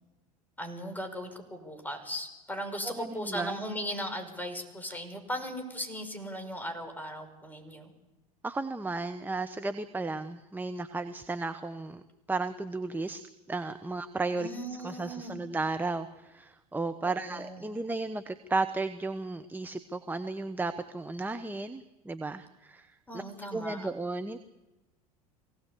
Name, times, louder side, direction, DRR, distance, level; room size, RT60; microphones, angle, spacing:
voice 1, 0.6-7.9 14.3-15.4 17.0-17.7 23.1-23.9, equal, 10° left, 6 dB, 5.6 m, -38 dB
voice 2, 2.8-3.6 8.4-12.0 12.3-13.2 13.5-14.5 14.8-23.2 23.5-24.4, right 3 dB, 10° right, 10 dB, 1.1 m, -34 dB
24.5 x 17.5 x 8.4 m, 1.1 s
hypercardioid pair, 80°, 19 cm